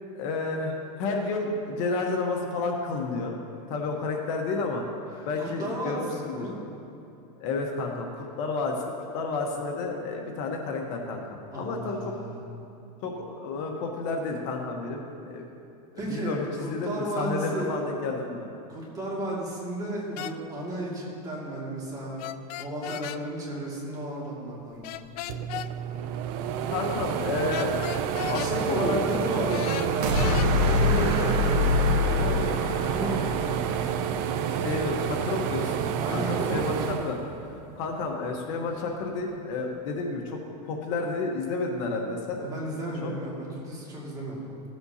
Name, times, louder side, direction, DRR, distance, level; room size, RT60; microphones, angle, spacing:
voice 1, 0.1-3.3 3.7-4.8 5.2-6.5 7.4-8.8 9.1-12.1 13.0-15.4 16.1-18.5 26.7-29.2 34.5-37.2 37.8-42.4 43.0-43.1, left 3 dB, 55° left, 1 dB, 1.2 m, -31 dB
voice 2, 5.1-6.6 11.5-12.4 16.0-17.7 18.7-22.2 22.6-25.0 28.1-31.4 31.7-32.6 32.9-33.3 34.6-35.0 35.9-36.6 42.4-44.4, right 1 dB, 20° right, -5 dB, 2.3 m, -33 dB
sound 1, 20.2-20.4 22.2-23.2 24.8-25.7 27.5-28.5 29.5-30.5, left 12 dB, 75° left, 0.4 m, -35 dB
sound 2, 25.0-25.1 25.3-37.9 38.3-39.5, right 8 dB, 45° right, 0.5 m, -29 dB
sound 3, 30.0-34.3, left 3 dB, 75° right, 1.5 m, -25 dB
15.5 x 7.8 x 2.8 m, 2.8 s
supercardioid pair, 145°, 20 cm